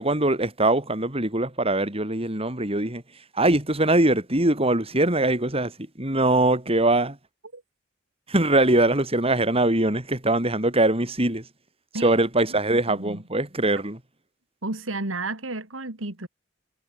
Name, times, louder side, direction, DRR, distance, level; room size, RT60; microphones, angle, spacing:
voice 1, 0.0-3.0 3.3-7.2 8.3-11.5 12.0-14.0, right 2 dB, 30° right, 4.6 m, -22 dB
voice 2, 12.5-13.2 14.6-16.3, right 2 dB, 80° right, 3.2 m, -32 dB
head